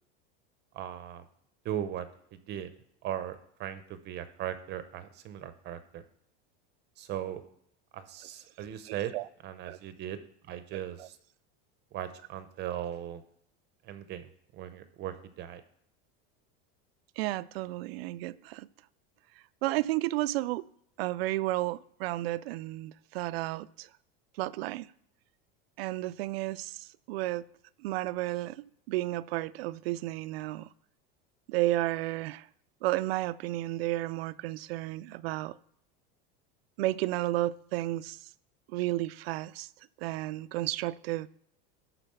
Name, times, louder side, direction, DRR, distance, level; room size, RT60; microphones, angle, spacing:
voice 1, 0.7-1.2 1.6-2.7 3.0-6.0 7.0-7.4 7.9-9.1 9.4-10.2 10.5-11.2 11.9-13.2 13.8-15.6, right 11 dB, 35° right, 0.7 m, -38 dB
voice 2, 8.9-9.3 9.7-9.8 10.7-11.1 17.2-18.7 19.6-20.6 21.0-23.9 24.4-24.9 25.8-27.5 27.8-30.7 31.5-32.5 32.8-35.6 36.8-38.2 38.7-39.7 40.0-41.3, right 17 dB, 90° right, 0.5 m, -32 dB
12.0 x 4.1 x 6.8 m
supercardioid pair, 150°, 29 cm